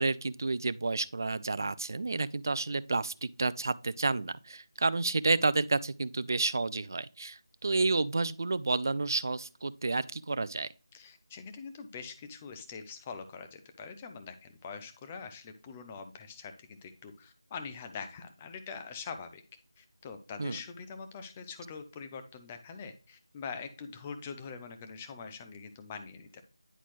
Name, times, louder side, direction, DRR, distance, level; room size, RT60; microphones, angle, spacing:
voice 1, 0.0-10.7 20.4-20.6, right 3 dB, 45° right, 0.4 m, -30 dB
voice 2, 10.9-19.4 19.8-26.4, left 5 dB, 10° left, 0.5 m, -44 dB
9.9 x 4.1 x 3.1 m
figure-of-eight pair, 170°, 3 cm